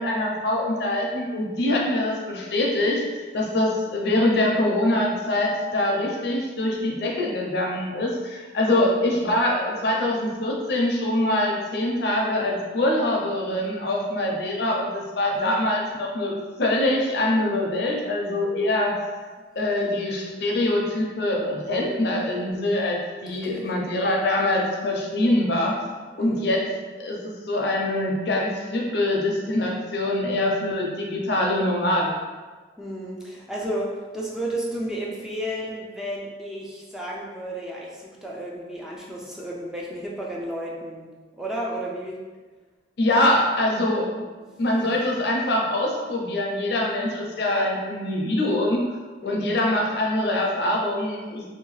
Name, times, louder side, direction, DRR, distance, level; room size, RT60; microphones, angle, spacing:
voice 1, 0.0-19.0 19.6-25.8 26.1-26.7 27.0-32.2 43.0-44.3 44.6-48.8 49.2-51.4, left 1 dB, 65° left, -1 dB, 0.5 m, -24 dB
voice 2, 23.3-23.7 26.2-26.5 32.8-42.2 49.2-49.4, right 1 dB, 5° right, -4 dB, 0.3 m, -33 dB
2.7 x 2.2 x 3.0 m, 1.4 s
head